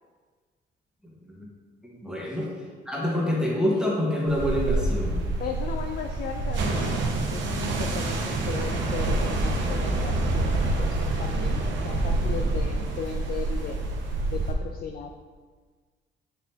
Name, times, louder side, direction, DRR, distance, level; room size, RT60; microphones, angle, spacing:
voice 1, 1.8-2.5 2.8-5.2, left 1 dB, 5° right, -6 dB, 1.4 m, -26 dB
sound 1, 4.3-14.5, right 2 dB, 70° right, 0.9 m, -27 dB
voice 2, 5.4-10.5 10.8-13.9 14.3-15.1, left 6 dB, 50° left, 4 dB, 0.4 m, -36 dB
6.2 x 5.6 x 2.8 m, 1.5 s
cardioid pair, 90°, 20 cm